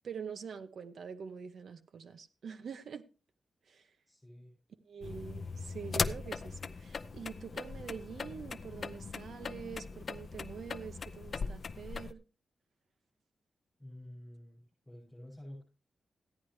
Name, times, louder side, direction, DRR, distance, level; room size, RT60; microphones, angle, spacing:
voice 1, 0.0-3.0 3.7-3.8 4.9-12.2, right 6 dB, 60° right, 0.9 m, -45 dB
voice 2, 4.1-4.5 13.8-15.6, left 1 dB, 5° left, 7.7 m, -50 dB
sound 1, 5.0-12.1, left 4 dB, 40° left, 0.5 m, -39 dB
15.0 x 10.0 x 3.2 m
wide cardioid pair, 180°, 0 cm